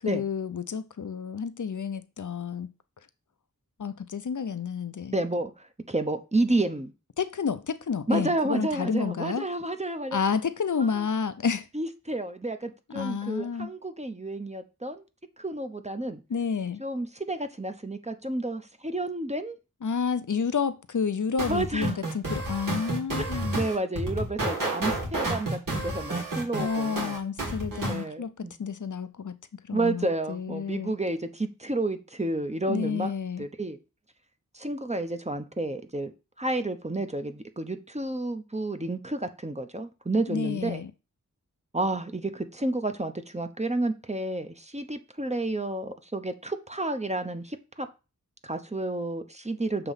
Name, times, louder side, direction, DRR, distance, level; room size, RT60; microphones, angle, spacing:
voice 1, 0.0-2.7 3.8-5.2 7.2-9.4 10.1-11.7 12.9-13.7 16.3-16.8 19.8-23.6 26.6-28.3 28.6-29.4 29.6-30.9 32.7-33.5 40.3-40.9, left 6 dB, 65° left, 0.6 m, -30 dB
voice 2, 5.1-6.9 8.1-10.2 10.9-11.0 11.7-15.0 15.4-16.2 16.8-19.6 21.5-22.0 23.2-27.2 27.9-28.5 29.7-33.1 33.4-33.8 34.5-36.1 36.4-40.8 41.7-47.9 48.4-49.9, right 2 dB, 20° right, 0.8 m, -30 dB
sound 1, 21.4-28.0, right 2 dB, 80° right, 2.0 m, -30 dB
6.9 x 3.0 x 5.6 m
wide cardioid pair, 45°, 32 cm